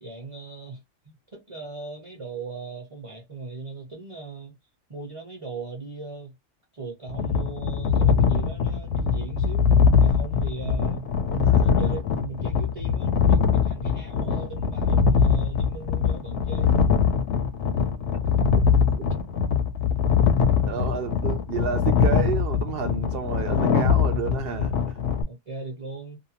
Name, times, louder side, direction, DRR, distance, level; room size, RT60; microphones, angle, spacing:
voice 1, 0.0-4.5 4.9-6.3 6.7-9.7 10.0-16.8 20.7-20.8 25.3-26.2, right 3 dB, 30° right, 0.7 m, -38 dB
sound 1, 7.1-25.2, left 6 dB, 65° left, 0.8 m, -22 dB
voice 2, 11.4-11.9 19.0-19.1 20.7-25.0, right 7 dB, 65° right, 0.6 m, -31 dB
2.7 x 2.1 x 2.8 m
omnidirectional pair, 1.4 m